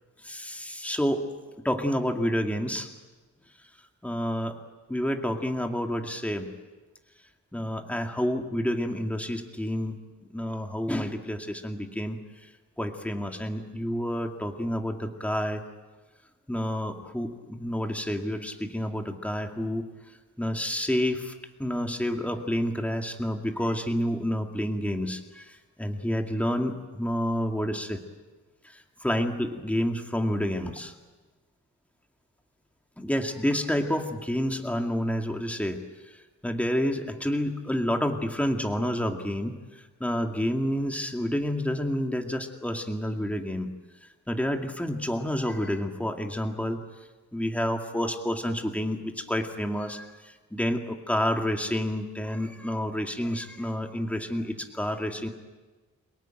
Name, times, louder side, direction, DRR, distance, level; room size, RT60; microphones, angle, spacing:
voice 1, 0.2-1.2 1.6-2.9 4.0-4.5 4.9-6.5 7.5-10.0 10.3-12.2 12.8-15.6 16.5-19.9 20.4-21.3 21.6-28.0 29.0-30.9 33.0-35.8 36.4-39.6 40.0-43.7 44.3-46.8 47.3-50.1 50.5-55.3, equal, 5° left, 3 dB, 2.2 m, -29 dB
29.0 x 18.5 x 9.1 m, 1.3 s
wide cardioid pair, 125°, 31 cm